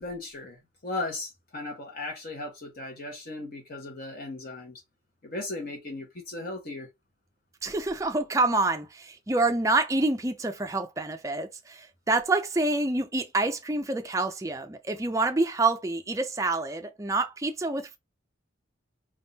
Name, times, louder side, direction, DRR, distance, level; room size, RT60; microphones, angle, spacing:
voice 1, 0.0-4.8 5.2-6.9, left 2 dB, 50° left, 1.1 m, -37 dB
voice 2, 7.6-18.0, right 2 dB, 15° right, 0.4 m, -27 dB
3.6 x 2.4 x 4.0 m
head